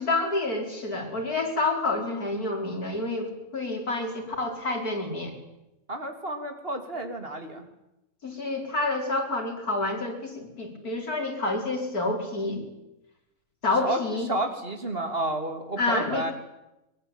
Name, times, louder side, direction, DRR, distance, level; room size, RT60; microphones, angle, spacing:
voice 1, 0.0-5.4 8.2-12.6 13.6-14.3 15.8-16.2, left 2 dB, 90° left, 2 dB, 5.6 m, -28 dB
voice 2, 5.9-7.7 13.8-14.0 14.3-16.3, right 1 dB, 40° right, 6 dB, 3.3 m, -31 dB
23.0 x 23.0 x 9.1 m, 0.92 s
omnidirectional pair, 1.5 m